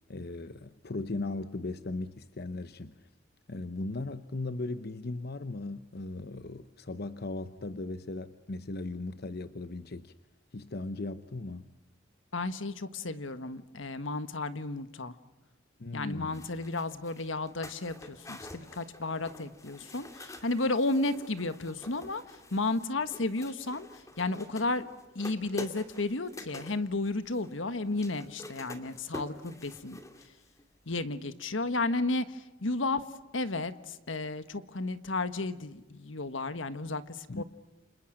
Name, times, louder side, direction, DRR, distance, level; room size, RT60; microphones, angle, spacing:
voice 1, 0.1-2.9 3.5-10.1 10.5-11.7 15.8-16.5 37.3-37.4, left 2 dB, 55° left, 11 dB, 0.9 m, -37 dB
voice 2, 12.3-15.1 15.9-23.9 24.2-30.0 30.9-33.0 33.3-37.4, left 2 dB, 80° left, 11 dB, 1.5 m, -33 dB
sound 1, 16.3-30.6 30.9-31.0, left 1 dB, 15° left, 2.4 m, -47 dB
29.5 x 27.0 x 6.5 m, 1.0 s
head